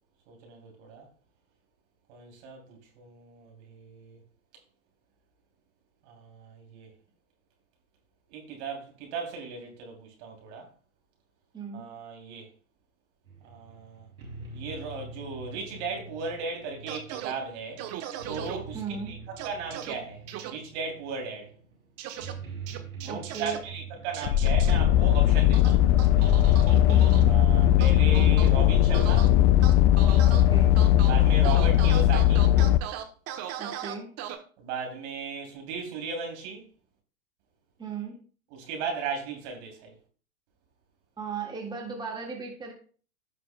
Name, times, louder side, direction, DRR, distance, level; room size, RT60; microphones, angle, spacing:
voice 1, 0.3-1.1 2.1-4.2 6.0-6.9 8.3-10.7 11.7-12.5 13.4-14.1 14.5-17.8 18.3-18.8 19.1-19.2 19.4-21.5 23.0-25.9 27.2-29.3 31.0-32.5 34.6-36.7 38.5-39.9, right 5 dB, 55° right, 3.0 m, -36 dB
voice 2, 11.5-11.8 18.7-19.1 23.1-23.6 26.7-27.2 30.3-30.8 33.6-34.1 37.8-38.2 41.2-42.7, right 5 dB, 10° right, 1.7 m, -37 dB
sound 1, 13.2-28.9, right 5 dB, 90° right, 4.7 m, -44 dB
sound 2, 16.9-17.3 17.8-18.6 19.4-19.9 20.3-20.5 22.0-22.3 22.7-23.6 24.1-24.7 25.5-27.2 27.8-28.5 28.9-29.3 29.6-30.4 30.8-31.1 31.4-34.3, right 11 dB, 35° right, 1.2 m, -37 dB
sound 3, 24.2-32.8, left 12 dB, 40° left, 0.5 m, -19 dB
16.5 x 5.9 x 2.2 m
hypercardioid pair, 100°, 42 cm